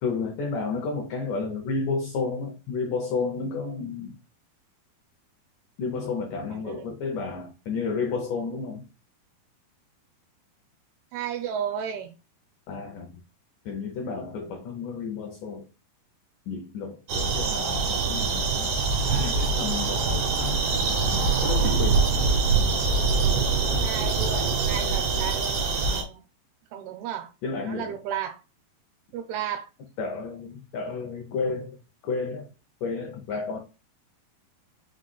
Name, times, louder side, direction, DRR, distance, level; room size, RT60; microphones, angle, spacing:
voice 1, 0.0-4.2 5.8-8.8 12.7-13.2 13.7-15.7 16.5-18.8 19.1-20.6 21.1-22.1 27.4-28.0 30.0-31.8 32.0-32.5 32.8-33.6, left 4 dB, 90° left, 1.8 m, -31 dB
voice 2, 6.5-6.9 11.1-12.1 14.1-14.5 23.8-26.2 26.7-27.3 27.6-28.4 29.1-29.7, right 9 dB, 85° right, 2.5 m, -34 dB
sound 1, 17.1-26.0, right 4 dB, 70° right, 2.3 m, -24 dB
5.9 x 3.7 x 2.2 m
omnidirectional pair, 4.6 m